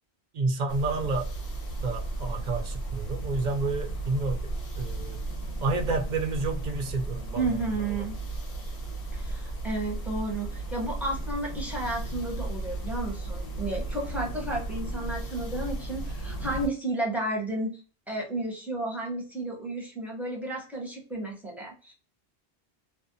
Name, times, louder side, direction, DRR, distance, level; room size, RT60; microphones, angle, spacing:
voice 1, 0.3-1.3 1.8-5.2 5.6-8.0, right 3 dB, 55° right, 4 dB, 0.5 m, -30 dB
sound 1, 0.7-16.7, right 2 dB, 65° left, 0.9 m, -35 dB
voice 2, 7.4-8.2 9.1-17.8 18.1-21.9, right 2 dB, ahead, -2 dB, 0.6 m, -32 dB
2.5 x 2.1 x 2.5 m, 0.36 s
omnidirectional pair, 1.1 m